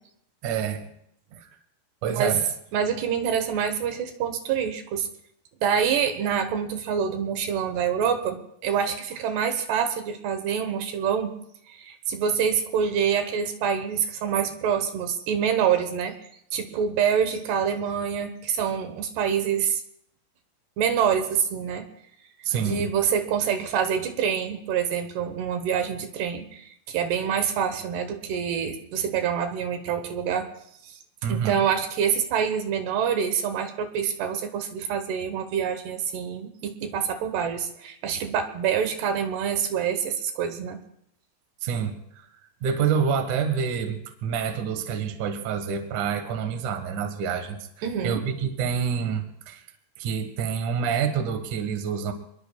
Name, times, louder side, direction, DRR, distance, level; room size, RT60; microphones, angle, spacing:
voice 1, 0.4-0.8 1.3-1.5 2.0-2.4 22.4-22.9 31.2-31.6 41.6-42.3 42.6-49.6 50.0-52.1, right 7 dB, 55° right, 6 dB, 2.6 m, -27 dB
voice 2, 2.7-5.1 5.6-11.3 11.7-16.1 16.5-19.8 20.8-21.8 22.6-30.4 30.8-31.0 31.3-40.8 47.8-48.2, right 7 dB, 80° right, 7 dB, 3.3 m, -26 dB
28.0 x 21.0 x 2.4 m, 0.74 s
omnidirectional pair, 4.8 m